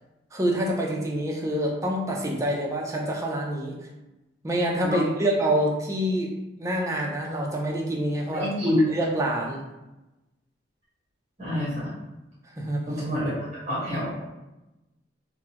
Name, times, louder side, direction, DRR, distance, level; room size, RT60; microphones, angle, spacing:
voice 1, 0.3-3.8 4.4-8.5 8.9-9.6 12.6-13.0, right 1 dB, 15° right, -2 dB, 0.4 m, -27 dB
voice 2, 8.3-8.8 11.4-11.9 12.9-13.3 13.7-14.2, equal, 35° right, -9 dB, 0.9 m, -27 dB
2.3 x 2.1 x 2.8 m, 1.0 s
head